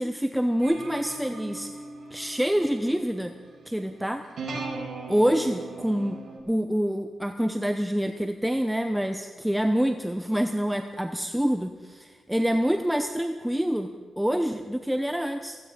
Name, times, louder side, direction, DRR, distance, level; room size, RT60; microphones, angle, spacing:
voice 1, 0.0-1.7 2.1-3.3 3.7-4.2 5.1-6.2 6.5-13.9 14.2-15.6, equal, 5° right, 7 dB, 0.8 m, -26 dB
sound 1, 0.6-6.4, right 3 dB, 75° right, 5.4 m, -39 dB
16.0 x 15.5 x 5.2 m, 1.5 s
cardioid pair, 90°, 0 cm